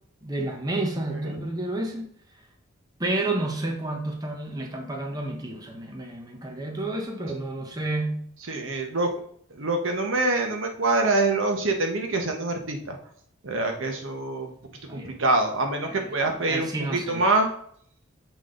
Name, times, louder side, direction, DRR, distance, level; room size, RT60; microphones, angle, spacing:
voice 1, 0.2-2.1 3.0-8.2 14.9-15.2 15.8-16.1 16.5-17.2, right 2 dB, 20° right, 1 dB, 0.9 m, -30 dB
voice 2, 8.5-9.1 9.5-13.0 13.4-14.5 14.9-17.5, right 2 dB, 70° right, 3 dB, 1.1 m, -25 dB
7.4 x 3.7 x 3.8 m, 0.63 s
head